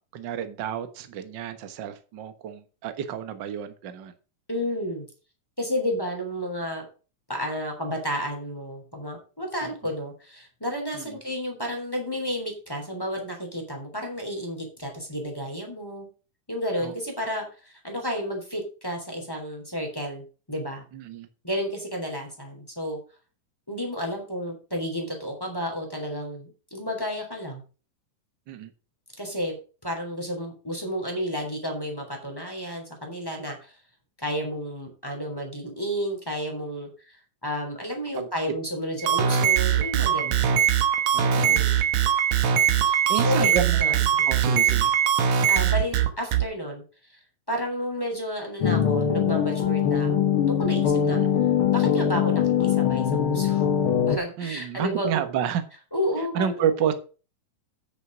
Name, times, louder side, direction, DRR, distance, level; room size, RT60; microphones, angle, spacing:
voice 1, 0.0-4.1 9.6-9.7 10.9-11.2 16.8-16.9 20.9-21.3 28.5-28.7 38.2-38.3 40.2-40.6 41.1-41.6 43.1-44.9 51.1-51.3 54.4-55.6 56.2-56.9, right 9 dB, 55° right, 10 dB, 1.2 m, -30 dB
voice 2, 4.5-5.1 5.6-6.8 7.3-16.1 16.5-20.8 21.4-23.0 23.7-27.6 29.2-29.5 29.8-33.7 34.2-40.5 41.5-41.8 42.9-44.3 45.5-46.8 47.1-47.2 47.5-51.2 51.7-53.6 54.1-55.2 55.9-56.6, equal, 5° left, 2 dB, 3.1 m, -31 dB
sound 1, 39.0-46.4, right 8 dB, 80° right, 2.8 m, -21 dB
sound 2, 48.6-54.2, left 8 dB, 60° left, 1.4 m, -22 dB
9.4 x 6.8 x 6.1 m, 0.35 s
omnidirectional pair, 3.7 m